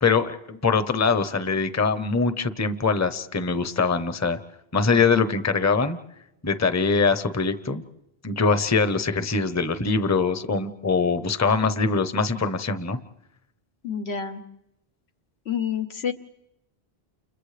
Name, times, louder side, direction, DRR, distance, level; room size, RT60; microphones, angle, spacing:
voice 1, 0.0-4.4 4.7-6.0 6.4-7.8 8.2-13.0, left 4 dB, 20° left, 11 dB, 0.7 m, -23 dB
voice 2, 13.8-14.4 15.4-16.1, left 7 dB, 85° left, 6 dB, 1.4 m, -29 dB
30.0 x 29.5 x 3.3 m, 0.86 s
omnidirectional pair, 1.1 m